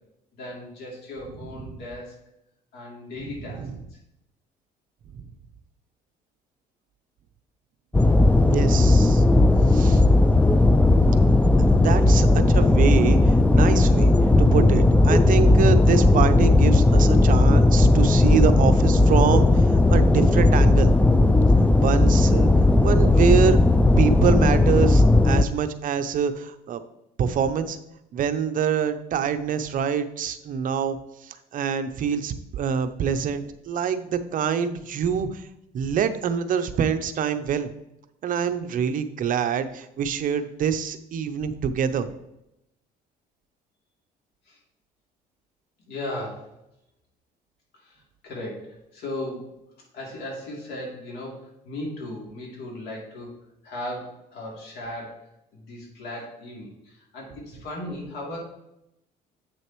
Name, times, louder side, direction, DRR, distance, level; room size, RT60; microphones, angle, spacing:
voice 1, 0.3-2.2 2.7-4.0 44.5-44.6 45.9-46.6 47.7-49.5 49.9-53.4 53.6-55.2 55.5-58.4, left 1 dB, 75° left, -2 dB, 2.9 m, -37 dB
voice 2, 3.4-3.8 5.1-5.2 8.5-9.2 9.7-10.0 11.7-20.9 21.8-22.5 22.8-23.6 24.0-26.8 27.2-27.8 28.1-31.0 31.2-35.5 35.7-37.7 38.2-42.1, right 7 dB, 55° right, 10 dB, 0.6 m, -25 dB
sound 1, 7.9-25.4, left 2 dB, 10° left, 0.3 m, -17 dB
8.2 x 6.3 x 3.1 m, 0.84 s
cardioid pair, 110°, 17 cm